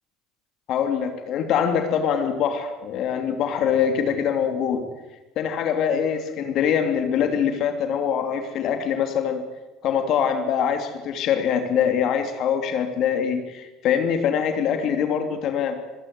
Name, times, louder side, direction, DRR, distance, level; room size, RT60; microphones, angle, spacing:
voice 1, 0.7-4.9 5.4-9.4 9.8-15.8, left 8 dB, 60° left, 7 dB, 2.9 m, -23 dB
25.5 x 16.5 x 8.1 m, 1.1 s
hypercardioid pair, 80°, 0 cm